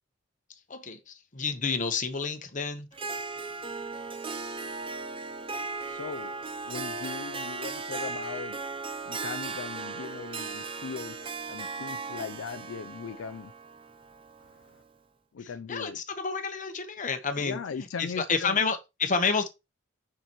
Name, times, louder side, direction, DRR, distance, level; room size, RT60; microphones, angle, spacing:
voice 1, 0.7-2.9 15.4-19.5, left 5 dB, 40° left, 1.0 m, -30 dB
Harp, 2.9-14.8, right 4 dB, 25° right, 0.6 m, -37 dB
voice 2, 5.9-6.3 6.7-8.6 9.1-11.2 11.5-13.5 15.3-16.0 17.4-18.5, left 6 dB, 85° left, 0.4 m, -39 dB
6.7 x 5.9 x 3.0 m
head